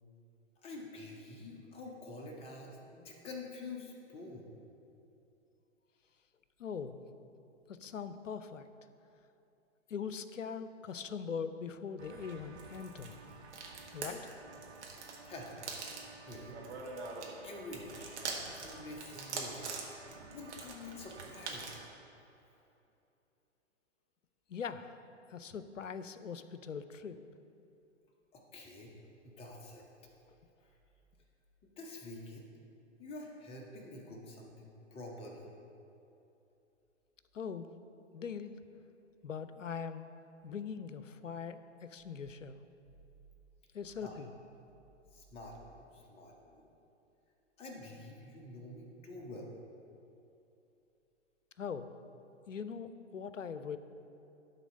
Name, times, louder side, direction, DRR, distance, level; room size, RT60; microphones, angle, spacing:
voice 1, 0.6-4.5 15.2-15.7 16.2-16.6 17.4-18.2 18.5-19.9 20.3-21.8 22.5-22.6 28.3-28.9 29.2-29.9 31.6-32.5 33.0-35.5 44.0-44.2 45.1-46.7 47.6-49.5, left 2 dB, 15° left, 0 dB, 0.9 m, -48 dB
voice 2, 6.6-7.0 7.7-8.7 9.9-13.2 13.9-14.3 24.5-25.0 25.3-27.2 37.3-37.7 38.1-38.5 39.2-40.0 40.4-42.6 43.7-44.3 51.6-51.9 52.5-53.8, left 6 dB, 80° left, 12 dB, 0.6 m, -41 dB
sound 1, 12.0-21.9, right 4 dB, 65° right, 1.5 m, -45 dB
12.0 x 4.0 x 5.3 m, 2.8 s
figure-of-eight pair, 115°, 37 cm